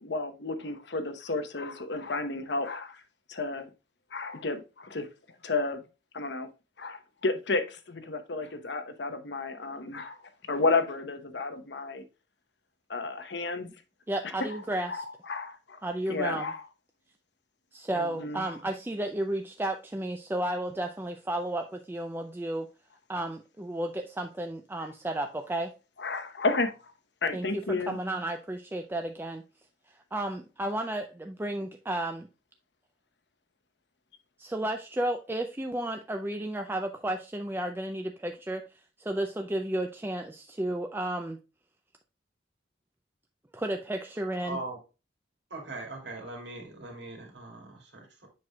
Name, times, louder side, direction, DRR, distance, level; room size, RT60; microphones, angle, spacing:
voice 1, 0.0-3.0 3.3-3.7 4.1-5.1 5.4-5.8 6.1-6.5 6.8-10.2 10.5-12.0 12.9-13.7 14.5-14.6 14.9-15.8 16.1-16.7 17.9-18.6 26.0-26.9 27.2-28.0, left 3 dB, 65° left, 0.9 m, -32 dB
voice 2, 14.1-15.0 15.8-16.5 17.7-22.7 23.1-25.7 27.3-29.4 29.9-32.3 34.4-38.6 39.0-41.4 43.5-44.6, right 1 dB, 10° right, 0.4 m, -33 dB
voice 3, 44.4-44.8 45.5-48.3, right 2 dB, 70° right, 2.3 m, -40 dB
7.4 x 6.0 x 2.3 m
head